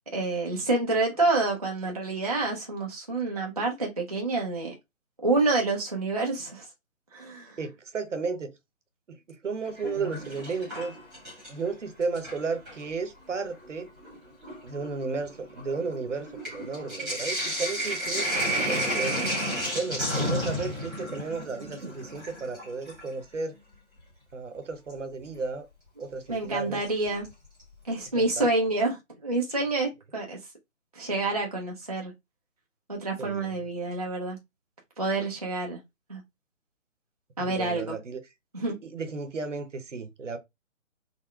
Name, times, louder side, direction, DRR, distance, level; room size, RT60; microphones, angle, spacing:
voice 1, 0.1-4.7 5.2-6.7 7.1-7.6 26.3-27.3 27.8-30.4 30.9-32.1 32.9-34.4 35.0-35.8 36.1-36.2 37.4-37.9 38.5-38.8, right 2 dB, 30° right, 0.4 m, -28 dB
voice 2, 7.6-8.6 9.1-11.0 11.5-13.9 14.6-19.2 19.7-23.6 24.3-25.7 26.0-26.8 28.1-28.5 33.2-33.5 37.4-38.2 38.7-40.4, right 4 dB, 65° right, 0.8 m, -34 dB
Sink (filling or washing), 9.6-11.7 12.0-12.8 13.6-13.7 14.0-23.1 24.9-25.0 26.8-27.3 27.6-27.7 27.9-28.0, equal, ahead, 1.1 m, -32 dB
3.7 x 2.1 x 2.2 m
figure-of-eight pair, 145°, 40 cm